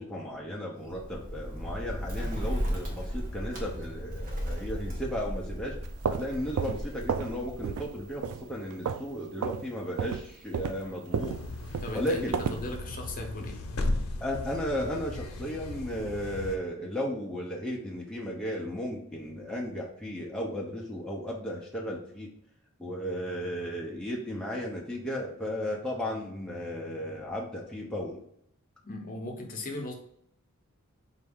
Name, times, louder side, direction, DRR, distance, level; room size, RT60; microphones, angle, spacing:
voice 1, 0.0-5.8 6.1-11.4 11.9-12.3 14.2-22.3 22.8-28.2, equal, 5° left, -3 dB, 0.7 m, -35 dB
Bird, 0.8-8.6, equal, 40° right, 0.9 m, -36 dB
sound 1, 5.8-7.4 7.6-7.9 8.2-9.1 9.4-9.6 10.0-12.7, right 6 dB, 80° right, 0.3 m, -32 dB
sound 2, 11.2-16.6, left 2 dB, 85° left, 0.8 m, -36 dB
voice 2, 11.8-12.2 12.5-13.6 28.8-29.9, left 2 dB, 40° left, 1 dB, 0.8 m, -37 dB
4.4 x 2.6 x 3.5 m, 0.69 s
head